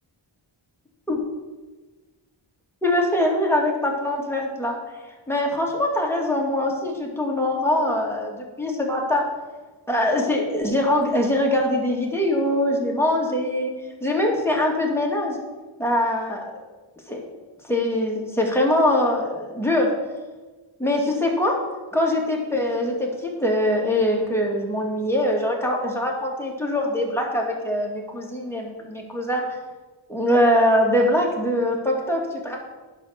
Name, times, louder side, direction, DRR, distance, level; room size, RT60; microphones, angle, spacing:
voice 1, 2.8-4.8 5.3-9.2 9.9-13.7 14.0-15.4 15.8-16.6 17.1-17.2 17.7-19.9 20.8-21.6 21.9-29.4 30.1-32.6, left 1 dB, 5° left, -2 dB, 2.4 m, -23 dB
11.0 x 5.3 x 6.7 m, 1.2 s
wide cardioid pair, 65°, 50 cm